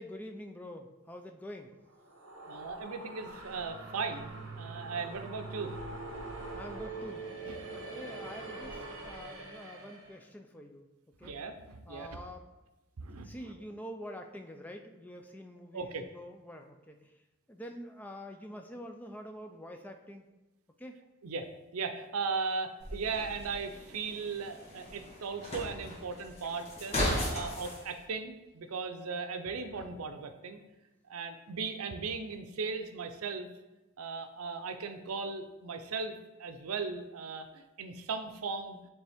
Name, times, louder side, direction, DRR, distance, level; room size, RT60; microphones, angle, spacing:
voice 1, 0.0-1.7 6.5-7.3 7.9-10.9 11.2-11.3 11.9-12.4 13.1-17.1 17.5-20.2 20.8-21.0, equal, 10° left, 4 dB, 0.4 m, -46 dB
sound 1, 1.9-10.2, right 2 dB, 65° right, 1.1 m, -43 dB
voice 2, 2.5-5.8 7.5-7.6 11.2-12.1 13.0-13.5 15.7-16.1 21.2-30.6 31.1-33.5 34.0-38.8, right 4 dB, 90° right, 7 dB, 0.6 m, -37 dB
sound 2, 22.8-27.8, left 1 dB, 30° left, 1.4 m, -36 dB
8.9 x 3.4 x 3.5 m, 1.0 s
head